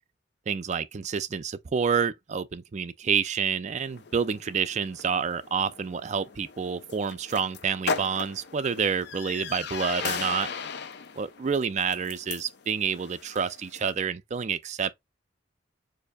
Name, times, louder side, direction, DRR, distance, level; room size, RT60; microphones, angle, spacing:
voice 1, 0.5-10.5 11.2-14.9, right 6 dB, 40° right, 0.4 m, -28 dB
sound 1, 3.8-13.9, left 5 dB, 60° left, 0.5 m, -37 dB
6.5 x 2.7 x 2.2 m
head